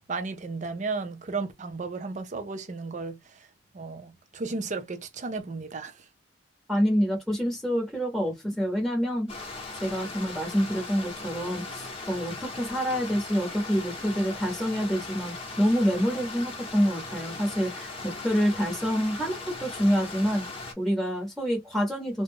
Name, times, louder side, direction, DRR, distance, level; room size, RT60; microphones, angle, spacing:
voice 1, 0.0-3.2 3.7-5.9, right 4 dB, 40° right, 0.5 m, -34 dB
voice 2, 6.7-9.3 9.8-20.4 20.8-22.2, equal, ahead, 0.8 m, -27 dB
Stream, 9.3-20.7, left 3 dB, 30° left, 0.8 m, -39 dB
2.3 x 2.0 x 3.4 m
head